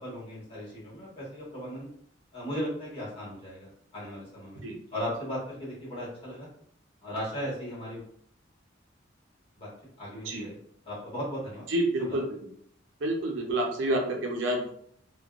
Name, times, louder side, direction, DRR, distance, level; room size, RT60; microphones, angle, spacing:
voice 1, 0.0-1.9 2.3-4.6 4.9-6.5 7.0-8.1 9.6-9.7 10.0-10.6 10.8-11.7 12.0-12.2, equal, 30° left, -7 dB, 1.2 m, -37 dB
voice 2, 11.7-12.2 13.0-14.7, right 1 dB, 70° right, 1 dB, 0.5 m, -28 dB
2.5 x 2.2 x 2.3 m, 0.66 s
head